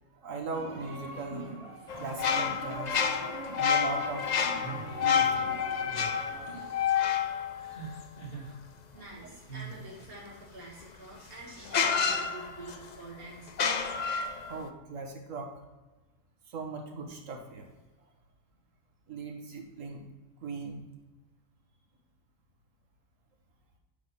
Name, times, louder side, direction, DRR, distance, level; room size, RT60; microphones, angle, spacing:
voice 1, 0.1-1.5 2.0-3.0 3.6-4.3 5.0-5.5 14.4-15.5 16.5-17.7 19.1-20.0 20.4-20.8, right 3 dB, 70° right, 3 dB, 1.5 m, -38 dB
sound 1, 0.5-6.7, right 3 dB, 30° right, 0.6 m, -44 dB
sound 2, 1.9-8.5 10.8-10.9 11.7-12.9 13.5-14.7, left 7 dB, 90° left, 0.3 m, -29 dB
sound 3, 4.6-5.5 5.9-6.1 6.5-7.0 7.6-8.5 9.5-9.8, right 5 dB, 40° left, 2.0 m, -43 dB
voice 2, 8.9-13.7, right 2 dB, 85° right, -4 dB, 2.7 m, -47 dB
9.6 x 3.6 x 5.8 m, 1.2 s
omnidirectional pair, 1.4 m